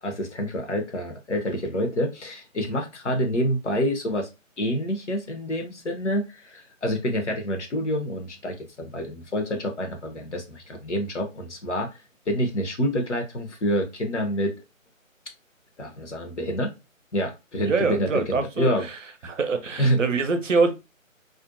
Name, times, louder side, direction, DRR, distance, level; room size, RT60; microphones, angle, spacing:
voice 1, 0.0-4.3 4.6-11.9 12.3-14.5 15.8-16.7 17.1-18.9 19.8-20.0, equal, 60° left, 0.7 m, -27 dB
voice 2, 17.6-18.7 19.2-20.7, right 4 dB, 65° right, 0.6 m, -24 dB
2.5 x 2.1 x 2.4 m
figure-of-eight pair, 150°, 41 cm